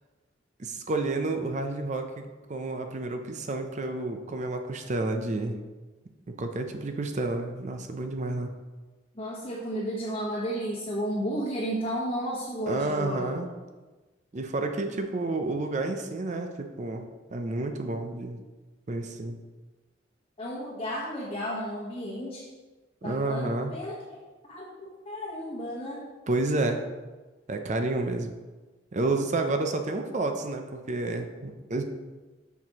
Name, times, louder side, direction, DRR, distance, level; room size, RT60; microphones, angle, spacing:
voice 1, 0.6-5.6 6.4-8.5 12.7-13.5 14.3-18.4 18.9-19.4 23.0-23.7 26.3-26.8 27.5-28.3 28.9-31.8, right 2 dB, 40° right, 6 dB, 0.5 m, -30 dB
voice 2, 9.1-13.4 20.4-22.5 23.0-24.0 24.5-26.1, equal, 30° left, -6 dB, 1.1 m, -33 dB
7.0 x 6.0 x 2.9 m, 1.2 s
head